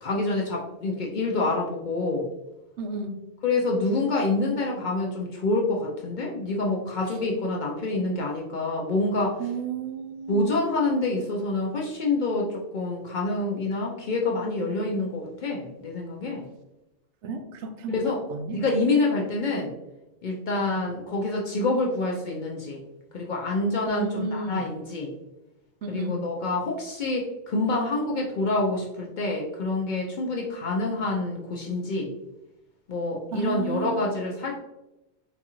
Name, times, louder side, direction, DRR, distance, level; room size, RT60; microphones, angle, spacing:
voice 1, 0.0-2.3 3.4-9.4 10.3-16.5 17.9-18.2 18.5-19.7 20.2-22.8 23.1-25.1 25.9-32.1 32.9-34.6, left 2 dB, 55° left, -1 dB, 0.5 m, -27 dB
voice 2, 2.8-3.2 9.4-10.5 17.2-18.6 20.7-20.8 23.9-24.7 25.8-26.2 33.3-34.1, right 4 dB, 85° right, 6 dB, 0.9 m, -32 dB
4.0 x 2.4 x 2.9 m, 0.96 s
omnidirectional pair, 1.2 m